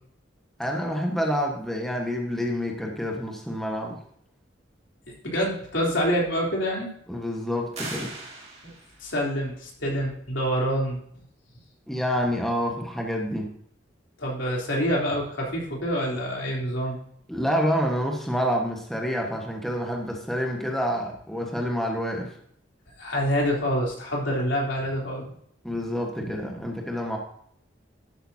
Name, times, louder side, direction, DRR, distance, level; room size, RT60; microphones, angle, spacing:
voice 1, 0.6-4.0 7.1-8.1 11.9-13.5 17.3-22.4 25.6-27.2, equal, ahead, 0 dB, 1.4 m, -28 dB
voice 2, 5.2-6.9 8.6-8.7 9.0-11.0 14.2-16.9 23.0-25.2 26.2-26.6, equal, 80° left, -2 dB, 3.4 m, -26 dB
sound 1, 7.8-9.1, right 3 dB, 35° right, 2.9 m, -38 dB
12.0 x 8.7 x 2.8 m, 0.67 s
head